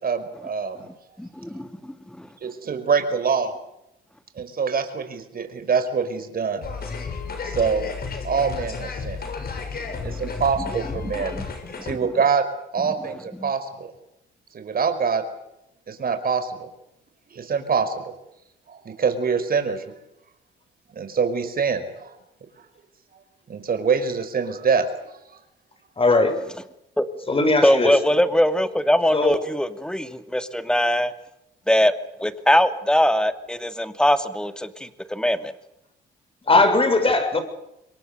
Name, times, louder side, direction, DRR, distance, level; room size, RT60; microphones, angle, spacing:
voice 1, 0.0-0.8 2.4-3.5 4.4-6.7 7.4-7.9 8.2-9.2 10.0-11.3 11.8-12.5 12.7-13.9 14.5-15.2 15.9-16.5 17.3-18.1 18.7-19.8 20.9-22.1 23.5-24.9, right 5 dB, 50° right, 9 dB, 5.2 m, -24 dB
voice 2, 1.2-2.3 10.0-10.4 11.3-11.4 11.9-12.1 13.4-13.5 27.0-27.1 27.6-31.1 31.7-31.9 32.2-35.5, equal, 5° left, 9 dB, 2.6 m, -22 dB
sound 1, 6.6-11.9, left 5 dB, 50° left, 7.2 m, -32 dB
voice 3, 26.0-26.4 27.3-27.9 29.1-29.4 36.5-37.4, left 2 dB, 30° left, 8 dB, 7.1 m, -19 dB
27.5 x 23.0 x 6.9 m, 0.84 s
cardioid pair, 90°, 20 cm